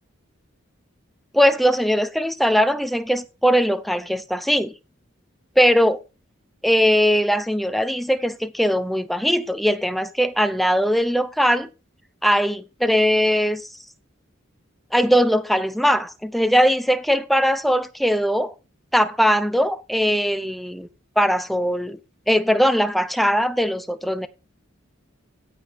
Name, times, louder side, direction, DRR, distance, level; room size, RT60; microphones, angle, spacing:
voice 1, 1.3-4.7 5.6-6.0 6.6-11.7 12.2-13.7 14.9-18.5 18.9-20.9 21.2-22.0 22.3-24.3, equal, ahead, 0.7 m, -20 dB
13.5 x 5.4 x 5.2 m
head